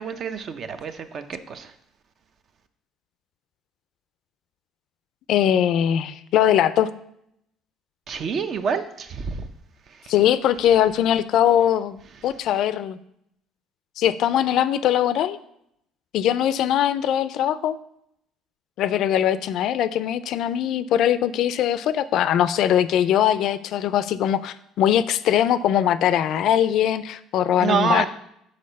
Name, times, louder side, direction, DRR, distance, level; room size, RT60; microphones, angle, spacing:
voice 1, 0.0-1.7 8.1-9.5 10.0-10.1 27.6-28.1, right 6 dB, 50° right, 9 dB, 0.6 m, -27 dB
voice 2, 5.3-6.9 10.1-12.0 12.2-13.0 14.0-15.4 16.1-17.8 18.8-28.1, left 10 dB, 65° left, 14 dB, 0.4 m, -21 dB
6.5 x 4.0 x 5.4 m, 0.75 s
cardioid pair, 100°, 0 cm